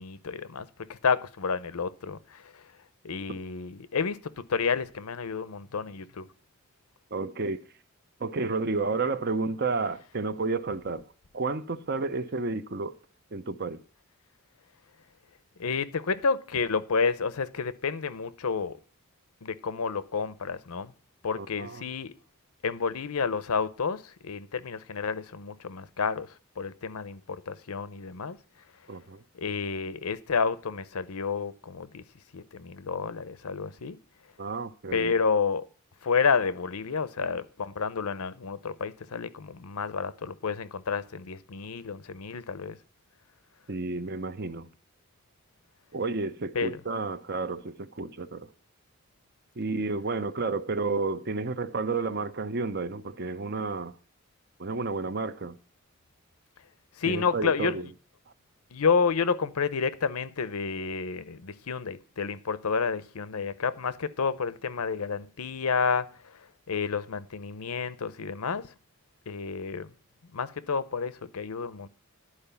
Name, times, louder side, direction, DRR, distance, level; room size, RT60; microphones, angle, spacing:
voice 1, 0.0-2.6 3.0-6.3 15.6-18.8 19.4-20.9 21.2-22.1 22.6-28.4 29.3-32.0 32.3-34.0 34.9-35.6 36.0-42.8 46.5-46.8 57.0-57.8 58.7-66.4 66.7-68.7 69.3-69.9 70.3-71.9, left 5 dB, 85° left, 0.7 m, -30 dB
voice 2, 7.1-7.6 8.2-11.0 11.3-12.9 13.3-13.8 21.4-21.8 28.9-29.2 34.4-35.1 43.7-44.7 45.9-48.5 49.6-53.9 54.6-55.6 57.1-57.9, right 3 dB, 45° right, 0.6 m, -31 dB
11.5 x 4.7 x 6.9 m
head